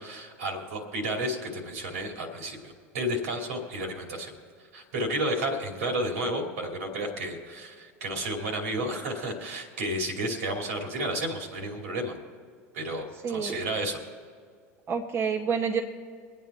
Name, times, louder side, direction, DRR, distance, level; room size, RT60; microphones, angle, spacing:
voice 1, 0.0-4.3 4.7-12.2 12.7-14.0, right 1 dB, 75° right, 2 dB, 2.8 m, -32 dB
voice 2, 13.2-13.6 14.9-15.8, right 6 dB, 35° right, 0 dB, 1.5 m, -28 dB
23.0 x 9.1 x 4.3 m, 2.1 s
hypercardioid pair, 90°, 8 cm